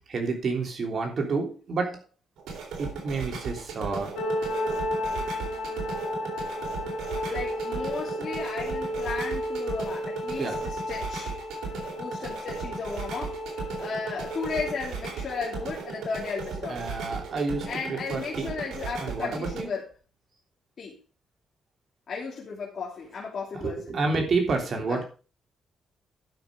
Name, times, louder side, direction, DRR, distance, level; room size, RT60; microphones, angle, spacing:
voice 1, 0.0-2.0 2.8-4.2 10.4-10.7 16.7-18.5 19.0-19.7 23.5-25.0, right 3 dB, 55° right, 2 dB, 3.4 m, -29 dB
sound 1, 2.4-19.6, right 5 dB, 85° right, 3.4 m, -37 dB
sound 2, 4.2-14.7, left 1 dB, 85° left, 2.8 m, -33 dB
voice 2, 7.1-11.3 12.0-16.8 17.7-19.8 20.8-21.0 22.1-24.0, left 5 dB, 55° left, -4 dB, 2.7 m, -35 dB
11.5 x 6.2 x 5.1 m, 0.35 s
cardioid pair, 80°, 0 cm